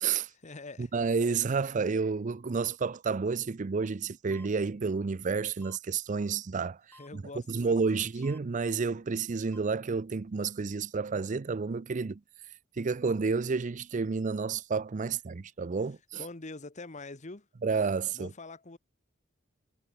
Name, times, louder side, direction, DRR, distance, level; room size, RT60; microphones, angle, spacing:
voice 1, 0.3-0.9 7.0-8.2 16.1-17.5 18.1-18.8, left 3 dB, 35° left, 1.3 m, -45 dB
voice 2, 0.8-7.2 7.5-12.2 12.8-16.2 17.6-18.3, right 5 dB, 40° right, 0.5 m, -30 dB
sound 1, 4.3-4.5 5.6-5.8 6.9-7.1 8.2-8.4 9.5-9.6, left 2 dB, 10° left, 1.2 m, -53 dB
head